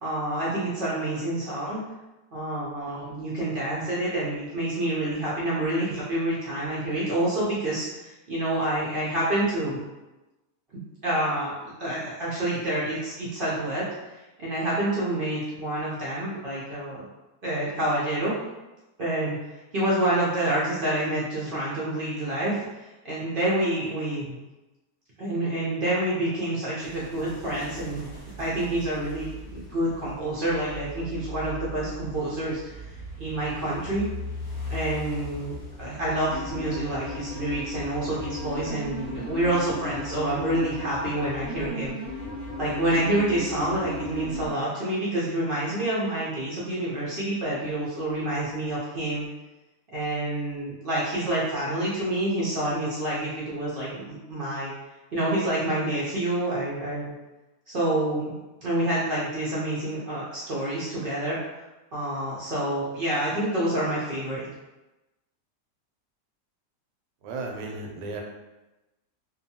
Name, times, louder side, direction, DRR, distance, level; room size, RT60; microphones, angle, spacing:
voice 1, 0.0-1.8 2.3-9.8 10.7-11.5 11.8-17.1 17.4-18.3 19.0-19.4 19.7-24.3 25.2-28.1 28.4-32.7 33.2-34.1 34.7-41.9 42.6-49.3 49.9-54.7 55.1-57.1 57.7-58.3 58.6-61.4 61.9-64.5, right 1 dB, 65° right, -7 dB, 0.5 m, -28 dB
sound 1, 26.8-39.6, left 1 dB, 10° right, 0.6 m, -40 dB
sound 2, 36.3-44.5, left 1 dB, 70° left, 0.5 m, -36 dB
voice 2, 67.2-68.2, right 3 dB, 85° right, 1 dB, 1.2 m, -34 dB
2.8 x 2.2 x 2.7 m, 1.0 s
omnidirectional pair, 1.8 m